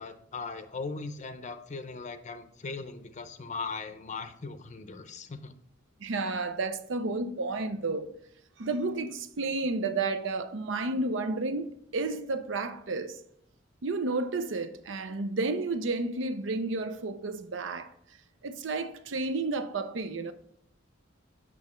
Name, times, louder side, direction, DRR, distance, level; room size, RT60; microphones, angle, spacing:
voice 1, 0.0-5.6, left 4 dB, 40° left, 0.6 m, -39 dB
voice 2, 6.0-8.1 8.6-13.2 13.8-17.9 18.4-20.3, right 3 dB, 70° right, 0.6 m, -31 dB
8.5 x 6.2 x 3.1 m
head